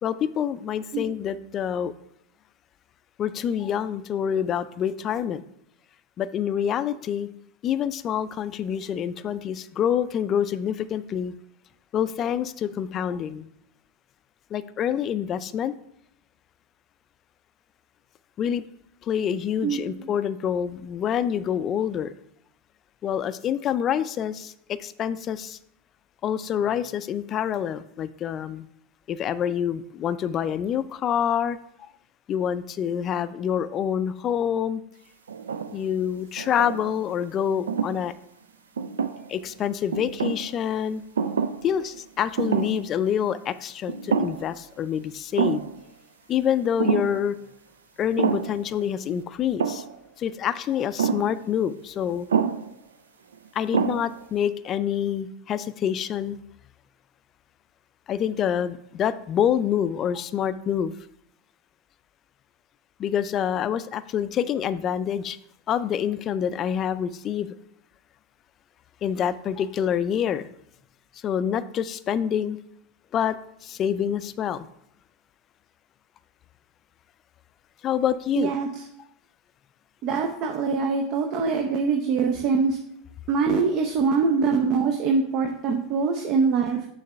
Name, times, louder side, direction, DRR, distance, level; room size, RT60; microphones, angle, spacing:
voice 1, 0.0-1.9 3.2-5.4 6.2-7.3 7.6-11.3 11.9-13.5 14.5-15.7 18.4-18.6 19.0-22.1 23.0-25.6 26.2-28.7 29.1-31.9 32.3-34.8 35.7-38.1 39.3-41.3 41.6-45.7 46.3-47.4 48.0-49.8 50.2-52.3 53.5-56.4 58.1-60.9 63.0-65.4 65.7-67.5 69.0-70.5 71.2-72.6 73.1-73.4 73.6-74.7 77.8-78.5, left 9 dB, 40° left, 14 dB, 0.4 m, -26 dB
sound 1, 35.3-35.9 36.4-37.1 37.7-38.0 38.8-39.5 39.9-40.5 41.2-41.7 41.9-42.0 42.4-42.9 43.2-43.3 43.9-44.6 44.8-44.9 45.4-45.8 46.8-47.2 48.2-48.6 49.6-50.0 51.0-51.4 52.3-52.7 53.3-53.4 53.7-54.2, right 6 dB, 85° right, 0.4 m, -26 dB
voice 2, 78.4-78.7 80.0-82.8 83.3-86.8, right 5 dB, 50° right, 3 dB, 0.7 m, -23 dB
6.4 x 3.2 x 5.7 m, 0.74 s
hypercardioid pair, 90°, 0 cm